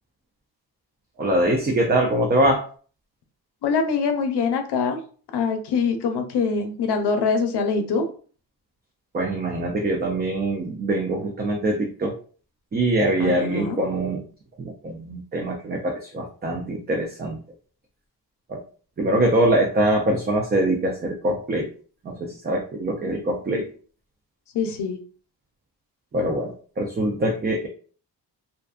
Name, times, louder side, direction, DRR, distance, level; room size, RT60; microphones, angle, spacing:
voice 1, 1.2-2.7 9.1-12.2 12.7-14.2 14.6-17.4 18.5-18.6 19.0-21.7 22.0-23.7 26.1-27.7, right 1 dB, 25° right, 1 dB, 0.4 m, -23 dB
voice 2, 3.6-5.0 5.3-8.0 13.2-13.8 24.5-25.0, left 5 dB, 75° left, 6 dB, 0.6 m, -24 dB
2.5 x 2.1 x 2.4 m, 0.41 s
cardioid pair, 95°, 41 cm